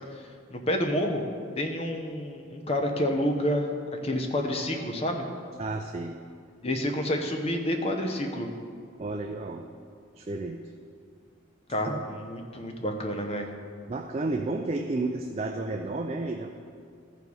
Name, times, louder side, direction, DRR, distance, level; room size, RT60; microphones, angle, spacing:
voice 1, 0.1-1.2 1.6-3.7 4.0-5.3 6.6-8.5 11.7-13.5, equal, 30° left, 4 dB, 0.8 m, -29 dB
voice 2, 5.6-6.2 9.0-9.7 10.2-10.6 13.9-16.5, right 2 dB, 30° right, 3 dB, 0.4 m, -31 dB
13.5 x 4.9 x 5.4 m, 2.2 s
head